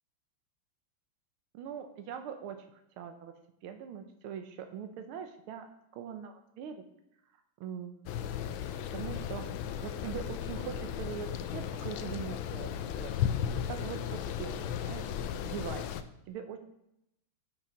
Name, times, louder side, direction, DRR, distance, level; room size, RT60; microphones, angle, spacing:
voice 1, 1.5-3.3 3.6-5.7 5.9-6.8 7.6-8.4 8.9-9.4 9.8-12.7 13.0-13.2 13.7-15.1 15.4-16.6, right 8 dB, 90° right, 7 dB, 1.7 m, -42 dB
sound 1, 8.1-16.0, left 9 dB, 75° left, 1.3 m, -35 dB
6.8 x 5.9 x 5.7 m, 0.80 s
omnidirectional pair, 2.3 m